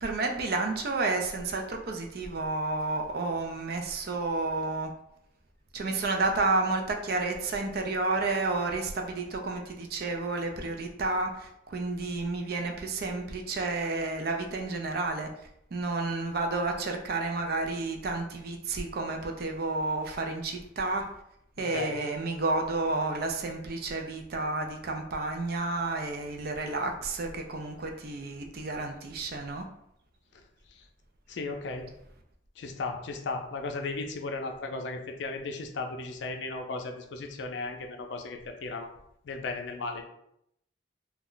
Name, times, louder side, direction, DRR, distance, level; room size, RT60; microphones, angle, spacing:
voice 1, 0.0-4.9 5.7-15.3 15.7-21.1 21.6-29.7, right 3 dB, 50° right, 3 dB, 0.4 m, -31 dB
voice 2, 31.3-31.8 32.6-38.9 39.2-40.0, left 3 dB, 70° left, 4 dB, 0.4 m, -35 dB
2.3 x 2.1 x 3.7 m, 0.75 s
head